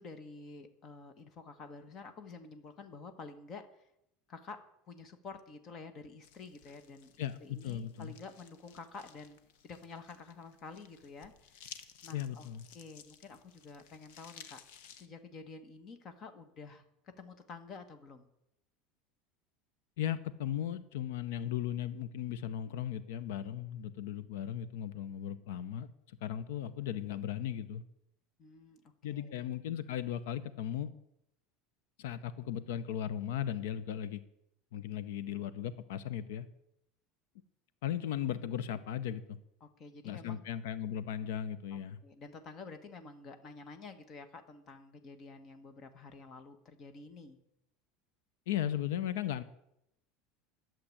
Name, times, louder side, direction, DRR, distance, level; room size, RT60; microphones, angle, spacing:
voice 1, 0.0-3.9 4.3-14.6 14.9-18.3 28.4-29.4 39.6-40.4 41.7-47.4, left 4 dB, 30° left, 9 dB, 1.3 m, -50 dB
sound 1, 6.2-15.1, left 8 dB, 65° left, 1.1 m, -56 dB
voice 2, 7.2-8.1 12.1-12.7 20.0-25.9 26.2-27.8 29.0-30.9 32.0-34.2 34.7-36.5 37.8-39.4 40.0-42.0 48.5-49.4, left 10 dB, 90° left, 15 dB, 0.8 m, -37 dB
11.5 x 7.6 x 10.0 m, 0.81 s
cardioid pair, 165°, 0 cm